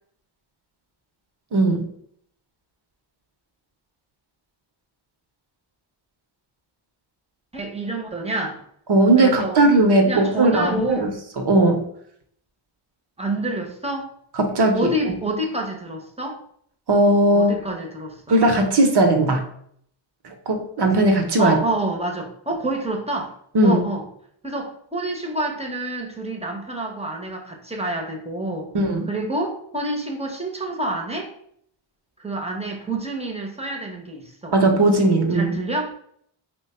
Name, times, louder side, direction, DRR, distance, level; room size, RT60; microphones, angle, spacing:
voice 1, 1.5-1.9 8.9-11.1 11.4-11.8 14.4-15.2 16.9-17.5 18.3-19.4 20.2-21.5 23.5-23.8 28.7-29.1 34.5-35.6, right 2 dB, 55° right, 4 dB, 0.8 m, -18 dB
voice 2, 7.5-8.6 9.2-9.6 10.0-11.1 13.2-14.1 14.7-16.4 17.3-18.3 21.4-23.3 23.6-24.0 24.4-28.7 29.1-31.3 32.2-34.6 35.3-35.9, right 2 dB, 15° right, 1 dB, 0.8 m, -28 dB
3.0 x 2.2 x 4.2 m, 0.66 s
cardioid pair, 60°, 49 cm